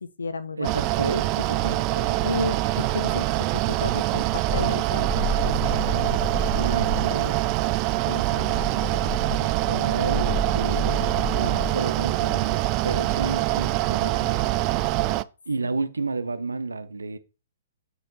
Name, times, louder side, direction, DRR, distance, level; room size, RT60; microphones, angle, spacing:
voice 1, 0.0-0.7 2.2-6.2 7.1-7.4 8.1-8.8 9.2-10.0 11.2-11.6 12.3-12.6 15.6-15.7, left 3 dB, 80° left, 0.6 m, -34 dB
Mechanical fan, 0.6-15.2, right 16 dB, 35° right, 0.3 m, -24 dB
voice 2, 0.6-2.5 6.4-7.4 9.7-12.6 12.8-14.5 15.5-17.2, right 3 dB, 85° right, 0.7 m, -31 dB
sound 1, 5.0-7.2 8.4-11.8, right 1 dB, 5° left, 1.7 m, -30 dB
7.1 x 4.2 x 4.0 m
figure-of-eight pair, 120°, 0 cm